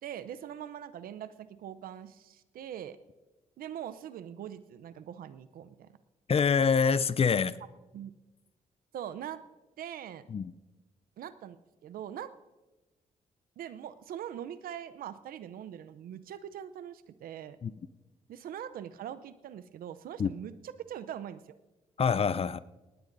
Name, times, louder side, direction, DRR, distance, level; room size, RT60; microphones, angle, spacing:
voice 1, 0.0-3.0 3.6-5.9 7.9-8.1 8.9-9.4 9.8-10.3 11.2-12.3 13.6-17.6 18.3-21.5, right 10 dB, 75° right, 0.7 m, -42 dB
voice 2, 6.3-7.5 10.3-10.5 17.6-17.7 20.2-20.3 22.0-22.6, left 6 dB, 40° left, 0.5 m, -25 dB
19.5 x 17.0 x 2.7 m
supercardioid pair, 50°, 15 cm